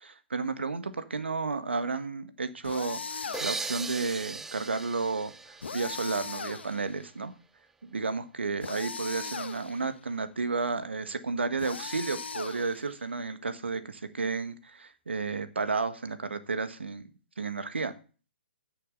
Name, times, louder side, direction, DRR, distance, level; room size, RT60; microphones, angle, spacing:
voice 1, 0.0-7.3 7.8-17.1 17.4-17.9, right 4 dB, 85° right, 11 dB, 1.4 m, -32 dB
sound 1, 2.6-3.8 5.6-7.0 8.6-9.9 11.6-13.0, left 5 dB, 80° left, 1.0 m, -39 dB
sound 2, 3.3-6.9, right 3 dB, 5° right, 0.4 m, -39 dB
9.6 x 6.6 x 6.7 m, 0.37 s
hypercardioid pair, 135°, 6 cm